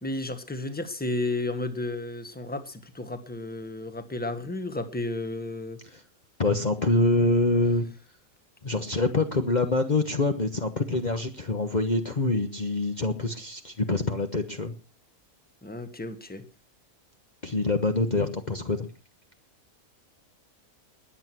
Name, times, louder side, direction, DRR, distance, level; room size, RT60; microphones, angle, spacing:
voice 1, 0.0-5.8 15.6-16.4, left 2 dB, 5° left, 10 dB, 1.5 m, -32 dB
voice 2, 6.4-7.8 8.6-14.7 17.4-18.9, left 2 dB, 35° left, 6 dB, 1.3 m, -25 dB
21.0 x 8.4 x 6.1 m, 0.35 s
omnidirectional pair, 1.5 m